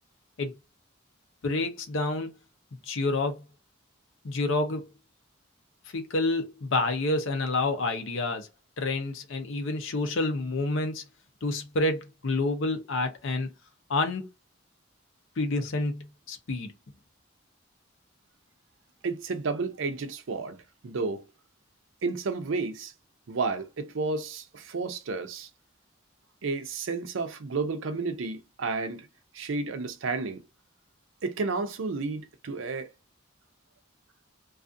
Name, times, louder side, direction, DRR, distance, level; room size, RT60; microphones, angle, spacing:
voice 1, 1.4-2.3 2.9-3.4 4.2-4.9 5.9-8.5 8.8-11.0 11.4-13.5 13.9-14.3 15.4-16.7, left 2 dB, 75° left, 0.6 m, -28 dB
voice 2, 19.0-20.6 20.8-21.2 22.0-22.9 23.3-25.5 26.4-29.1 29.3-30.4 31.2-32.9, right 4 dB, 75° right, 0.5 m, -31 dB
2.5 x 2.4 x 2.5 m
head